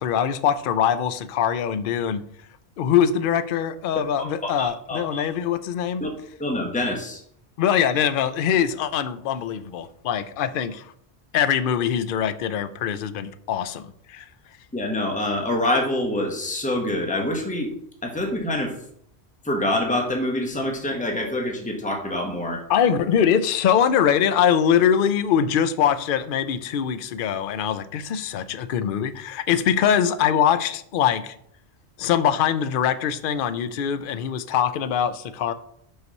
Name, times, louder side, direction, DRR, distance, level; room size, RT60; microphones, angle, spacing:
voice 1, 0.0-2.2 2.8-6.0 7.6-10.8 11.3-14.3 22.7-31.3 32.0-35.5, left 8 dB, 60° left, 0.7 m, -23 dB
voice 2, 4.6-5.3 6.0-6.1 6.4-7.2 14.7-17.7 18.0-18.7 19.4-22.6, left 1 dB, 5° left, 1.2 m, -26 dB
5.9 x 5.6 x 5.3 m
omnidirectional pair, 1.1 m